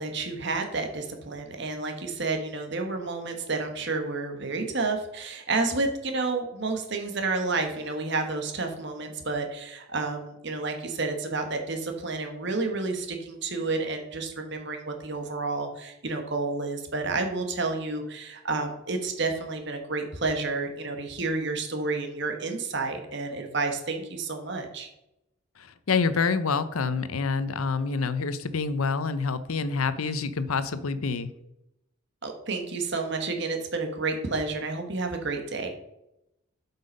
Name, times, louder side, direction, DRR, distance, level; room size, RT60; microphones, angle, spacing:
voice 1, 0.0-24.9 32.2-35.7, right 3 dB, 55° right, 5 dB, 1.3 m, -30 dB
voice 2, 25.6-31.3, left 4 dB, 85° left, 13 dB, 0.7 m, -27 dB
7.8 x 5.5 x 5.3 m, 0.85 s
head